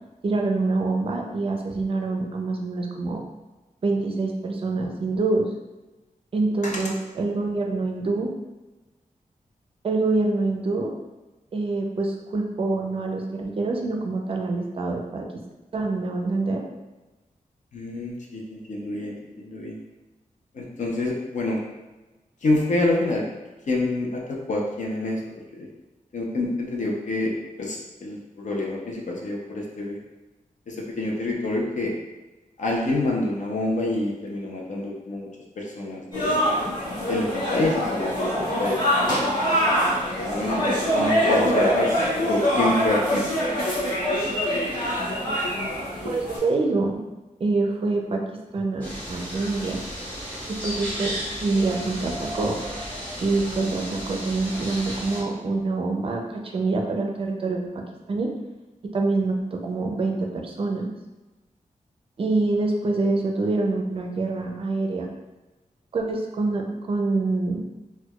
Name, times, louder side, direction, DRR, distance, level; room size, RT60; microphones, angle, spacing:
voice 1, 0.2-3.2 3.8-5.5 6.3-8.3 9.8-10.9 11.5-15.2 15.7-16.6 46.0-47.0 47.4-48.2 48.5-49.8 50.5-52.6 53.2-57.6 58.1-58.3 58.9-60.9 62.2-65.1 65.9-67.6, right 3 dB, 40° right, 1 dB, 0.4 m, -25 dB
voice 2, 17.7-19.8 20.5-21.6 22.4-23.2 23.7-25.2 25.6-25.7 26.1-30.0 30.7-31.9 32.6-35.3 35.6-36.4 37.1-38.8 39.2-39.4 40.1-41.9 42.2-43.3 43.8-45.4, left 2 dB, 60° left, -2 dB, 0.6 m, -27 dB
sound 1, 36.1-46.4, equal, 35° left, 1.3 m, -24 dB
sound 2, 48.8-55.2, equal, 10° left, 1.1 m, -34 dB
4.4 x 2.2 x 2.3 m, 1.1 s
wide cardioid pair, 175°, 14 cm